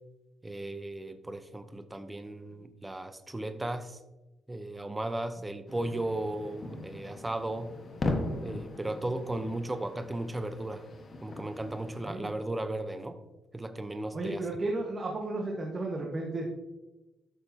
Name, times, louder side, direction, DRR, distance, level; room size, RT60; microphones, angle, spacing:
voice 1, 0.4-4.0 4.5-7.7 8.4-10.8 11.2-13.2 13.5-14.4, right 1 dB, 15° right, 9 dB, 0.8 m, -36 dB
sound 1, 5.7-12.1, left 2 dB, 40° left, 1.4 m, -38 dB
voice 2, 14.1-16.5, right 2 dB, 35° right, -1 dB, 1.5 m, -33 dB
12.5 x 6.7 x 2.9 m, 1.0 s
cardioid pair, 90°, 0 cm